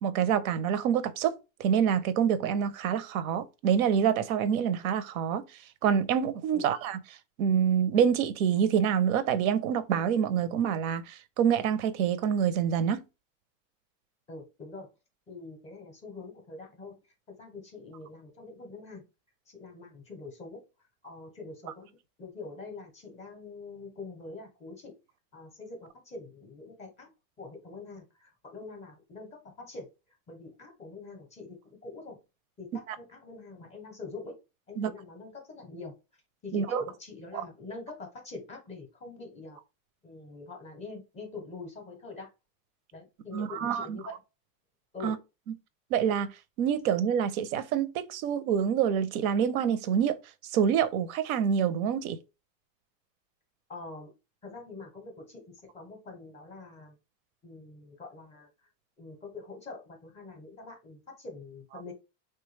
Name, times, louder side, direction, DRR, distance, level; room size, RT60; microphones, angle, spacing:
voice 1, 0.0-5.4 5.8-7.0 7.4-13.0 34.8-34.9 36.5-36.8 37.3-37.4 43.3-44.0 45.0-45.2 45.9-46.3 46.6-50.2 50.5-52.2, right 8 dB, 85° right, 0.6 m, -26 dB
voice 2, 14.3-14.9 15.3-17.0 17.3-19.0 19.5-20.6 21.0-21.9 22.2-24.9 25.3-27.1 27.4-29.9 30.3-32.2 32.6-34.4 34.7-35.9 36.4-39.6 40.0-42.3 42.9-44.1 44.9-45.2 53.7-54.1 54.4-56.9 57.4-58.7 59.0-61.9, left 3 dB, 15° left, 0.5 m, -44 dB
3.4 x 2.2 x 3.1 m
supercardioid pair, 160°, 41 cm